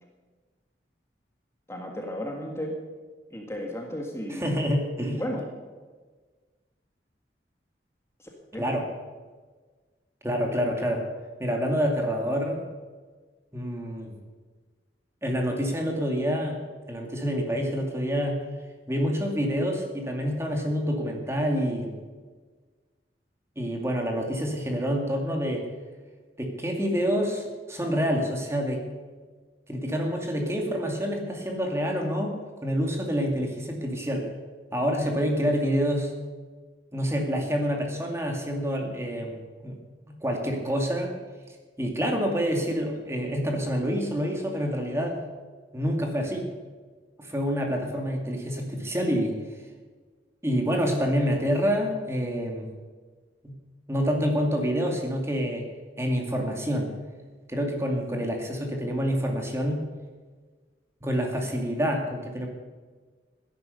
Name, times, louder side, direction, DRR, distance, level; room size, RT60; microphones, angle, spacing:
voice 1, 1.7-2.7 3.3-4.5 5.2-5.5 8.2-8.7, equal, 15° left, 1 dB, 1.7 m, -34 dB
voice 2, 4.3-5.2 8.6-8.9 10.2-11.1 11.4-12.6 13.5-14.2 15.2-16.6 16.9-18.4 18.9-21.9 23.6-25.7 26.4-28.8 29.7-34.3 34.7-36.1 36.9-39.4 39.6-39.8 40.1-41.1 41.8-45.2 45.7-46.4 47.2-49.4 50.4-52.7 53.4-53.5 53.9-55.7 56.0-56.9 57.5-59.8 61.0-62.5, equal, 15° right, 2 dB, 2.2 m, -27 dB
16.0 x 10.5 x 6.7 m, 1.4 s
head